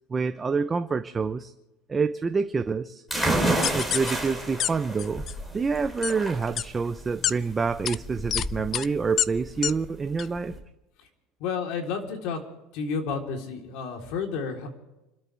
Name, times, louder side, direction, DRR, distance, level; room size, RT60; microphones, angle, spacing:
voice 1, 0.1-1.5 1.9-3.0 3.7-5.2 5.5-10.5, right 5 dB, 15° right, 9 dB, 0.7 m, -27 dB
sound 1, 3.1-10.6, right 1 dB, 5° left, 3.8 m, -30 dB
sound 2, 3.6-4.1 4.6-4.7 5.0-5.3 6.0-6.1 6.6-6.7 7.2-7.3 7.8-8.0 8.3-8.4 8.7-8.9 9.2-9.3 9.6-9.7 10.2-10.3, left 10 dB, 35° left, 0.4 m, -26 dB
voice 2, 11.4-12.4 12.7-14.7, left 5 dB, 60° left, 2 dB, 3.7 m, -31 dB
29.5 x 13.0 x 3.4 m, 0.97 s
supercardioid pair, 145°, 0 cm